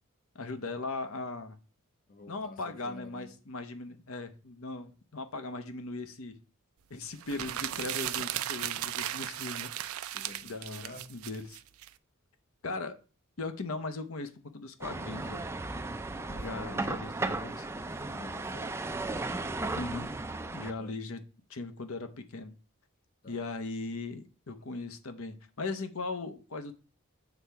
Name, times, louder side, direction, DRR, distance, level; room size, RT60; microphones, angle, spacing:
voice 1, 0.3-1.6 2.3-6.4 6.9-9.7 10.4-11.6 12.6-13.0 13.4-15.5 16.3-17.9 19.7-20.1 20.5-21.2 21.5-22.5 23.3-26.7, left 3 dB, 70° left, 0.8 m, -39 dB
voice 2, 2.1-3.4 10.1-11.3 16.1-16.9 17.9-18.9 20.8-21.0 23.2-23.4, left 3 dB, 40° left, 0.7 m, -50 dB
sound 1, 7.2-11.9, right 12 dB, 75° right, 0.4 m, -36 dB
sound 2, 14.8-20.7, right 2 dB, 10° right, 0.3 m, -35 dB
8.0 x 3.5 x 5.5 m
head